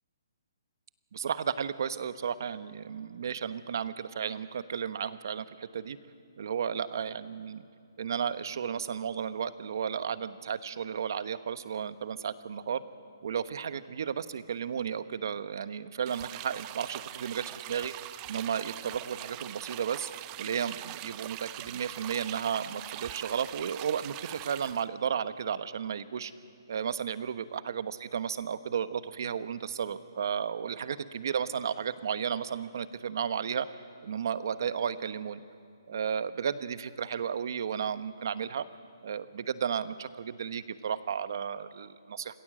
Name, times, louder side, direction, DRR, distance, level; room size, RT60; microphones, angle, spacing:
voice 1, 1.1-6.0 6.4-7.7 8.0-12.8 13.2-17.9 18.3-20.1 20.4-26.3 26.7-33.7 34.0-35.4 35.9-38.6 39.0-42.4, right 7 dB, 55° right, 13 dB, 1.0 m, -33 dB
sound 1, 16.1-24.9, right 15 dB, 20° right, 0.5 m, -42 dB
27.5 x 18.0 x 7.7 m, 2.4 s
hypercardioid pair, 165°, 2 cm